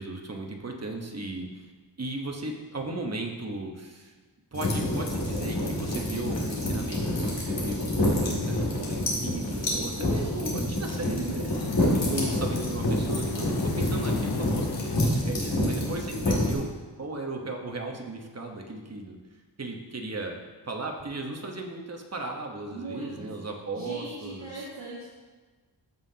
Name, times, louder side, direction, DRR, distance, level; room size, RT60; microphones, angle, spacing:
voice 1, 0.0-1.7 2.0-4.1 4.5-11.5 12.1-14.7 15.0-16.7 17.0-19.2 19.6-20.4 20.6-24.7, right 2 dB, 35° right, 1 dB, 1.1 m, -36 dB
sound 1, 4.5-16.5, left 1 dB, 85° left, 2.4 m, -27 dB
voice 2, 11.2-11.6 22.7-23.3 23.7-25.1, right 2 dB, 60° right, -11 dB, 2.3 m, -40 dB
sound 2, 11.5-16.1, left 6 dB, 60° left, 0.6 m, -37 dB
14.0 x 5.5 x 2.8 m, 1.3 s
wide cardioid pair, 110°, 43 cm